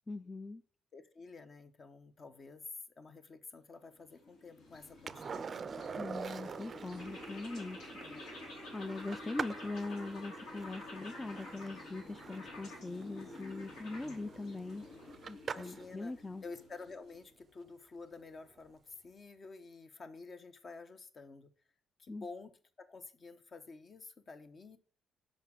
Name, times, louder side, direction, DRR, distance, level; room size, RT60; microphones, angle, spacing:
voice 1, 0.1-0.6 5.9-8.0 8.7-14.9 15.3-16.4 22.1-22.3, left 2 dB, 20° left, 11 dB, 0.4 m, -41 dB
voice 2, 0.9-2.6 3.0-5.6 8.0-8.3 13.9-14.3 15.5-21.5 22.0-24.8, left 4 dB, 45° left, 10 dB, 0.9 m, -51 dB
sound 1, 3.9-17.4, left 2 dB, 85° left, 3.1 m, -50 dB
sound 2, 4.6-9.6, left 4 dB, 65° left, 1.2 m, -66 dB
Skateboard, 5.1-15.9 18.5-18.6, right 6 dB, 45° right, 0.4 m, -46 dB
5.8 x 5.0 x 6.0 m, 0.43 s
cardioid pair, 90°, 0 cm